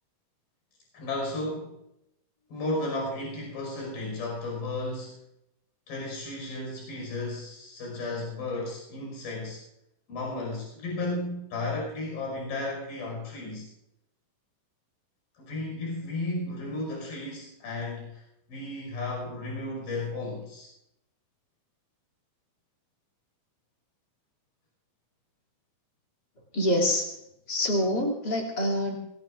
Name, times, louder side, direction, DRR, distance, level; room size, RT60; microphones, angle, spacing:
voice 1, 0.9-1.8 2.5-5.2 5.9-9.6 10.1-13.7 15.4-18.2 18.5-20.7, left 2 dB, 80° left, -1 dB, 7.3 m, -34 dB
voice 2, 26.5-27.1 27.5-29.0, left 1 dB, 30° left, 0 dB, 2.8 m, -26 dB
27.5 x 19.0 x 2.5 m, 0.82 s
omnidirectional pair, 4.4 m